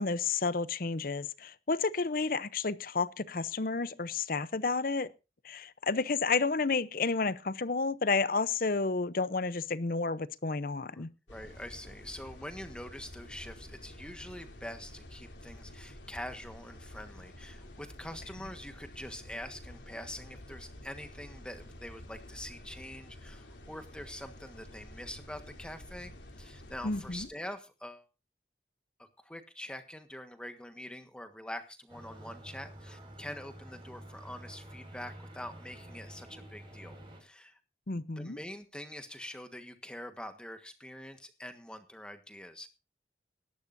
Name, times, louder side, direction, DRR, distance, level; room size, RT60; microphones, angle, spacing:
voice 1, 0.0-5.1 5.4-11.1 26.8-27.3 37.9-38.4, left 4 dB, 50° left, 0.7 m, -31 dB
voice 2, 10.9-26.1 26.4-28.0 29.0-37.6 38.2-42.7, left 1 dB, 5° left, 1.4 m, -45 dB
sound 1, 11.3-27.3, left 1 dB, 80° left, 3.4 m, -50 dB
sound 2, 31.9-37.2, right 1 dB, 30° right, 5.3 m, -49 dB
20.0 x 11.5 x 2.7 m
head